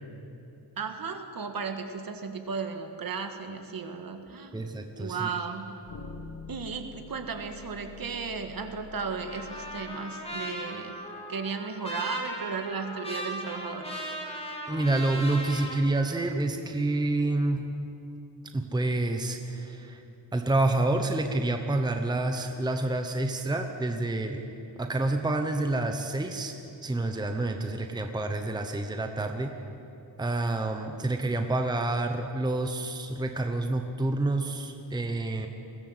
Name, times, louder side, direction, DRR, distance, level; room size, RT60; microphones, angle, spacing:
voice 1, 0.8-4.6 5.0-5.8 6.5-11.0 11.3-14.0, right 5 dB, 50° right, 6 dB, 1.7 m, -35 dB
sound 1, 4.2-4.4 5.9-10.0, left 5 dB, 65° left, 1.9 m, -46 dB
voice 2, 4.5-5.3 14.7-17.6 18.5-20.0 20.3-24.5 24.8-26.5 26.8-29.5 30.2-35.5, right 2 dB, 10° right, 5 dB, 0.9 m, -28 dB
Trumpet, 9.0-15.8, equal, 15° left, 2.8 m, -38 dB
21.5 x 16.5 x 8.0 m, 2.9 s
wide cardioid pair, 180°, 43 cm